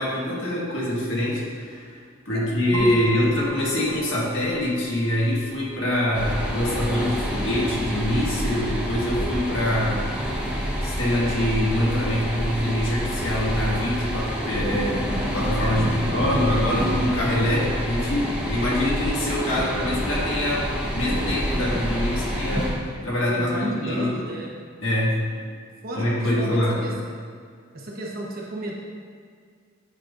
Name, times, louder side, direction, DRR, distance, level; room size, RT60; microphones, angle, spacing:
voice 1, 0.0-2.0 2.2-10.1 10.8-24.1 24.8-25.2 25.9-26.8, left 1 dB, 70° left, -5 dB, 1.6 m, -24 dB
voice 2, 2.3-3.3 15.7-16.1 17.5-17.7 19.4-19.9 21.5-22.0 23.3-24.5 25.8-26.9 27.7-28.8, right 1 dB, 45° right, -3 dB, 1.1 m, -33 dB
sound 1, 2.7-10.6, right 1 dB, 85° right, 1.3 m, -42 dB
sound 2, 6.1-22.7, equal, 5° right, 1.1 m, -28 dB
8.9 x 5.4 x 2.5 m, 2.1 s
head